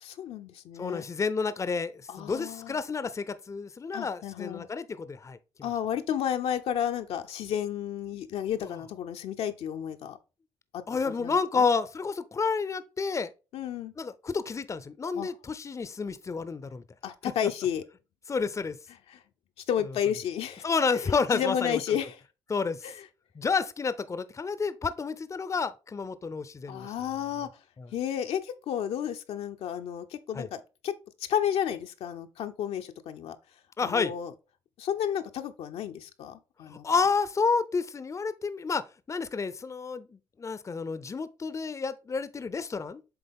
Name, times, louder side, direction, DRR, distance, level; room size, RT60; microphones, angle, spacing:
voice 1, 0.0-1.0 2.1-2.8 3.9-4.7 5.6-10.2 10.7-11.7 13.5-13.9 15.1-15.3 17.0-17.8 19.1-19.2 19.7-20.6 20.9-22.1 22.8-22.9 26.7-27.5 27.9-30.9 31.3-33.4 33.8-34.3 34.8-36.8, left 9 dB, 70° left, 0.6 m, -32 dB
voice 2, 0.8-5.4 8.7-8.8 10.9-13.3 14.0-16.8 18.3-18.8 20.6-22.0 22.5-22.9 23.4-26.9 27.8-27.9 30.3-30.5 33.8-34.1 36.7-43.0, left 5 dB, 30° left, 0.5 m, -30 dB
7.9 x 3.5 x 3.5 m
hypercardioid pair, 50°, 11 cm